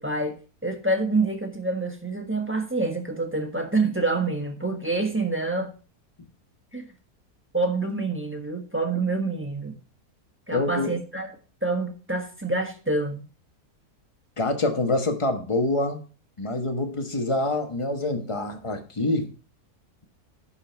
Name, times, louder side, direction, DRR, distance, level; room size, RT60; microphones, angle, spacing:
voice 1, 0.0-5.7 6.7-6.8 7.5-9.7 10.5-11.3 11.6-13.2, right 3 dB, 10° right, 1.2 m, -27 dB
voice 2, 10.5-10.9 14.4-16.0 16.4-19.3, left 2 dB, 20° left, 1.1 m, -26 dB
11.0 x 5.7 x 4.5 m
omnidirectional pair, 1.6 m